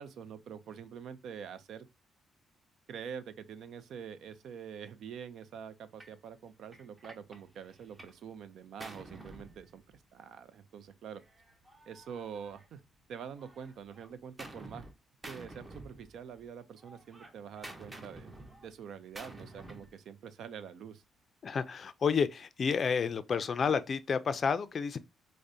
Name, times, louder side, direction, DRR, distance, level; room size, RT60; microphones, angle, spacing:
voice 1, 0.0-1.9 2.9-11.2 11.9-12.8 13.1-14.8 15.3-18.3 18.6-21.0, right 7 dB, 70° right, 0.4 m, -45 dB
Gunshot gunfire, 6.0-6.2 6.7-8.2 8.5-10.2 11.2-13.0 13.4-14.9 15.2-16.5 16.8-20.0, right 2 dB, 20° right, 0.7 m, -50 dB
voice 2, 21.4-25.0, left 6 dB, 45° left, 0.4 m, -30 dB
4.8 x 2.1 x 2.6 m
cardioid pair, 90°, 0 cm